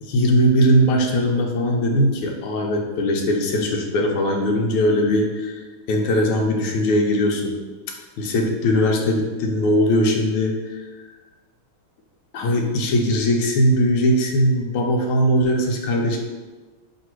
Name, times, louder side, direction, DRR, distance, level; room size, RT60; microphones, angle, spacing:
voice 1, 0.0-5.6 5.9-7.6 8.2-10.8 12.3-16.2, equal, 80° left, 1 dB, 1.4 m, -20 dB
3.2 x 2.9 x 4.3 m, 1.3 s
omnidirectional pair, 2.4 m